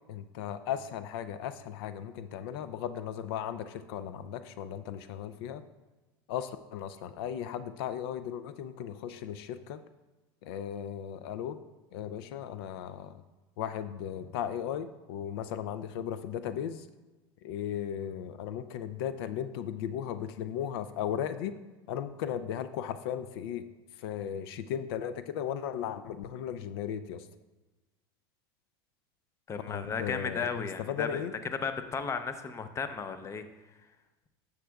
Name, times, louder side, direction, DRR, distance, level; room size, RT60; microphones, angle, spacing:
voice 1, 0.1-5.6 6.3-9.8 10.4-11.6 11.9-13.2 13.6-16.9 17.4-21.6 21.9-23.7 24.0-27.3 29.7-30.5 30.8-31.3, left 9 dB, 75° left, 12 dB, 0.4 m, -36 dB
voice 2, 29.5-31.2 31.5-33.4, left 5 dB, 25° left, 10 dB, 0.6 m, -34 dB
9.9 x 7.1 x 2.3 m, 1.2 s
supercardioid pair, 110°, 13 cm